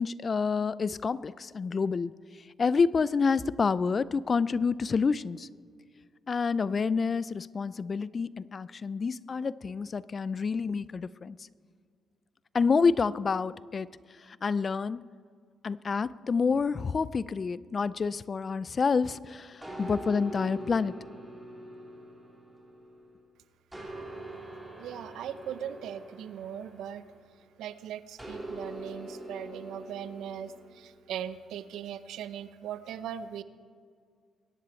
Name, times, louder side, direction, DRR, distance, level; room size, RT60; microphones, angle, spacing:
voice 1, 0.0-2.1 2.6-5.5 6.3-11.4 12.5-13.9 14.3-15.1 15.6-20.9, left 5 dB, 40° left, 19 dB, 0.4 m, -28 dB
sound 1, 19.6-23.2 23.7-27.4 28.2-30.9, right 1 dB, 10° right, 3.3 m, -43 dB
voice 2, 24.8-27.0 27.6-33.4, right 9 dB, 80° right, 14 dB, 0.7 m, -39 dB
22.5 x 10.5 x 4.4 m, 2.2 s
cardioid pair, 90°, 0 cm